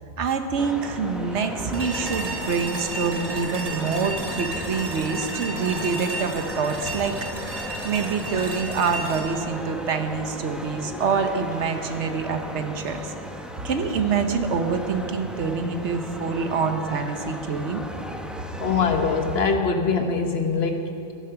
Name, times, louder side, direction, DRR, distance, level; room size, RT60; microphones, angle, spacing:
voice 1, 0.2-7.3 7.8-13.1 13.6-17.8, right 5 dB, 75° right, 7 dB, 1.3 m, -26 dB
sound 1, 0.6-19.6, equal, ahead, 0.7 m, -36 dB
sound 2, 1.7-10.8, right 1 dB, 30° right, 1.5 m, -33 dB
sound 3, 4.3-4.4 5.3-5.5 6.5-6.7 8.3-8.6 9.4-9.5 10.5-10.7 11.5-11.7 12.8-13.0 13.9-14.0, right 3 dB, 55° right, 2.2 m, -45 dB
voice 2, 18.6-21.1, left 4 dB, 60° left, 5 dB, 1.3 m, -23 dB
13.5 x 11.0 x 5.8 m, 2.8 s
omnidirectional pair, 1.2 m